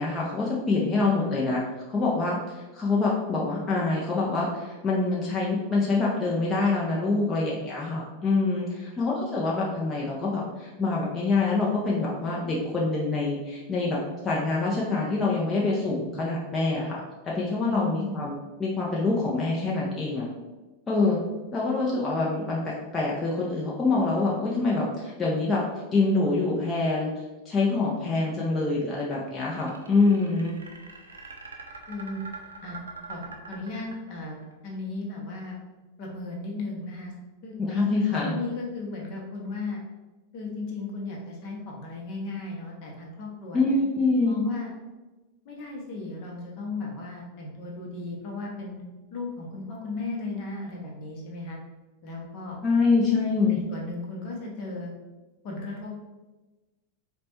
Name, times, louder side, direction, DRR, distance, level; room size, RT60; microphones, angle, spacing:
voice 1, 0.0-1.6 1.9-2.4 2.7-14.0 14.2-18.3 18.6-20.3 20.9-21.2 21.5-25.6 25.9-27.1 27.5-30.6 37.6-38.4 43.5-44.4 52.6-53.6, left 3 dB, 20° left, -5 dB, 0.6 m, -25 dB
voice 2, 17.7-18.3 31.9-32.2 32.6-32.8 33.1-34.4 34.6-35.6 36.0-37.1 37.4-37.6 38.0-39.8 40.3-43.7 44.3-44.7 45.4-48.8 49.1-51.6 52.0-52.6 53.5-54.9 55.4-55.9, left 3 dB, 45° left, -1 dB, 0.8 m, -35 dB
sound 1, 29.5-34.5, right 3 dB, 70° right, 0.4 m, -43 dB
4.1 x 2.2 x 2.9 m, 1.2 s
figure-of-eight pair, 90°, 0 cm